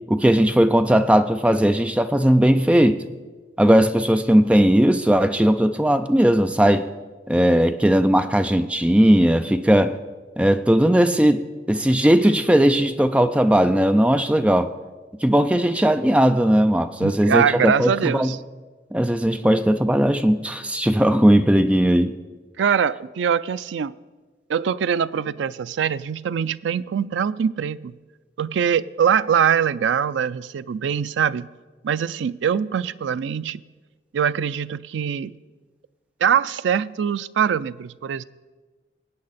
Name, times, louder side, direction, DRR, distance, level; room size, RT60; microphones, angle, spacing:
voice 1, 0.1-3.0 3.6-6.9 7.3-10.0 10.4-14.7 15.2-18.3 18.9-22.1, equal, 5° right, 9 dB, 0.4 m, -18 dB
voice 2, 17.0-18.4 22.6-23.9 24.5-27.9 28.4-31.5 31.8-33.6 34.1-35.3 36.2-38.2, right 7 dB, 85° right, 16 dB, 0.4 m, -23 dB
19.5 x 8.6 x 4.1 m, 1.3 s
head